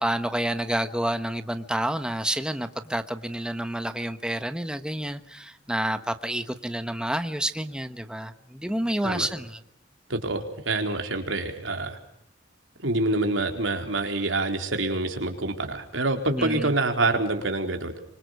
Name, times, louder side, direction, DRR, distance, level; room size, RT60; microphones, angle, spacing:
voice 1, 0.0-9.6 16.3-16.7, right 1 dB, 5° right, 1.2 m, -29 dB
voice 2, 10.1-12.0 12.8-18.0, right 2 dB, 85° right, 4.3 m, -26 dB
25.5 x 25.5 x 6.7 m
head